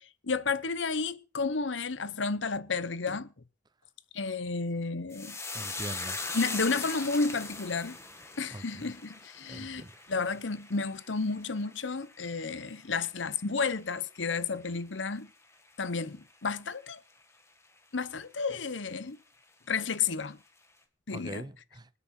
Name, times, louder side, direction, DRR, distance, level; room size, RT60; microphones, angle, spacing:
voice 1, 0.0-3.3 4.1-5.4 6.3-8.0 8.4-15.3 15.8-17.0 17.9-19.2 19.7-20.4 21.1-21.4, left 4 dB, 80° left, 1.0 m, -32 dB
sound 1, 5.1-13.7 14.0-14.7 15.0-15.2, left 3 dB, 15° left, 2.1 m, -41 dB
voice 2, 5.5-6.2 8.5-8.9 9.5-9.9 21.1-21.9, right 1 dB, 20° right, 0.7 m, -42 dB
25.5 x 8.5 x 4.5 m
head